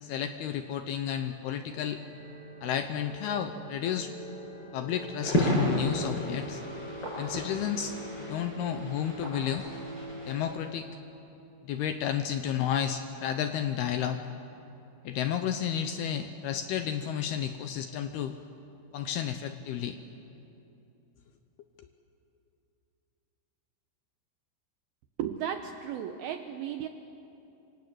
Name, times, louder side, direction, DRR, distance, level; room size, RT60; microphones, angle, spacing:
voice 1, 0.0-2.0 2.6-4.1 4.7-6.6 7.2-9.7 10.3-10.9 11.6-14.2 15.0-18.3 18.9-20.0 21.8-21.9, left 9 dB, 75° left, 8 dB, 2.4 m, -32 dB
sound 1, 1.0-10.6, equal, 35° right, 8.2 m, -44 dB
sound 2, 5.2-10.6, equal, 20° left, 6.9 m, -33 dB
voice 2, 25.2-26.9, right 9 dB, 80° right, 6 dB, 2.2 m, -34 dB
27.0 x 26.0 x 8.1 m, 2.9 s
omnidirectional pair, 5.4 m